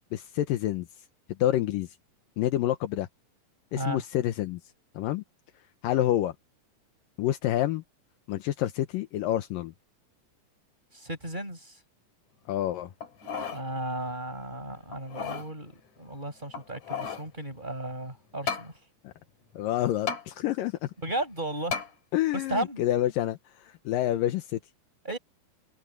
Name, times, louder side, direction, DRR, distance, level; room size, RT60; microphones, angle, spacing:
voice 1, 0.1-0.9 1.4-1.9 2.4-3.1 3.7-4.6 5.0-5.2 5.8-6.3 7.2-7.8 8.3-9.7 12.5-12.9 19.0-19.1 19.6-20.9 22.1-24.6, left 13 dB, 80° left, 2.6 m, -28 dB
voice 2, 10.9-11.8 13.5-18.7 21.0-21.8 22.3-22.8 25.0-25.2, right 1 dB, 10° right, 7.8 m, -34 dB
sound 1, 13.0-13.6 14.1-14.2 14.9-15.5 16.5-17.3 18.5-18.7 20.1-20.2 21.7-21.9 22.5-22.6, left 7 dB, 55° left, 4.4 m, -33 dB
omnidirectional pair, 4.1 m